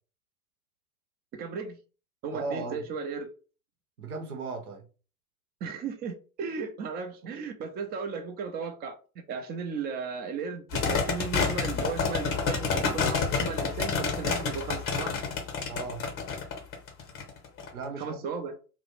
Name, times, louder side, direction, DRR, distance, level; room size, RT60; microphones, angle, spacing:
voice 1, 1.3-1.8 2.2-3.3 5.6-9.0 9.3-15.1 18.0-18.6, right 5 dB, 25° right, 0.4 m, -35 dB
voice 2, 2.3-2.8 4.0-4.9 15.7-16.0 17.7-18.2, right 3 dB, 80° right, 0.9 m, -36 dB
sound 1, 10.7-17.7, left 5 dB, 30° left, 0.8 m, -29 dB
2.4 x 2.1 x 2.9 m
figure-of-eight pair, 90°, 43 cm